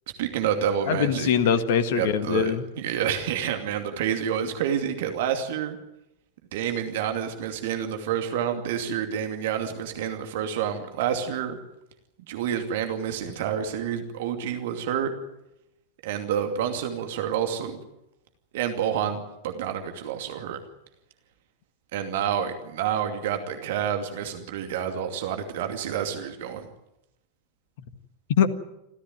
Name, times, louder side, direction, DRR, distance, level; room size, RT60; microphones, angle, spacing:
voice 1, 0.2-1.5 2.0-2.5 2.8-5.8 6.5-11.6 12.3-15.1 16.0-17.8 18.5-20.6 21.9-26.7, right 8 dB, 55° right, 6 dB, 2.5 m, -28 dB
voice 2, 0.9-2.6 28.3-28.5, left 8 dB, 55° left, 12 dB, 1.8 m, -22 dB
27.5 x 15.0 x 9.4 m, 0.87 s
figure-of-eight pair, 90°, 0 cm